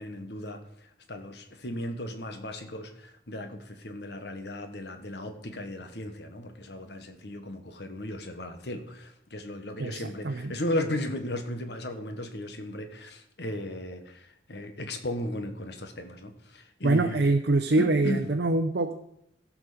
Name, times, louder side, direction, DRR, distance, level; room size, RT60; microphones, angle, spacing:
voice 1, 0.0-17.2 17.8-18.3, left 1 dB, 70° left, 7 dB, 1.4 m, -36 dB
voice 2, 9.8-10.5 16.8-18.9, right 2 dB, 70° right, 5 dB, 0.7 m, -24 dB
16.0 x 6.2 x 5.1 m, 0.77 s
head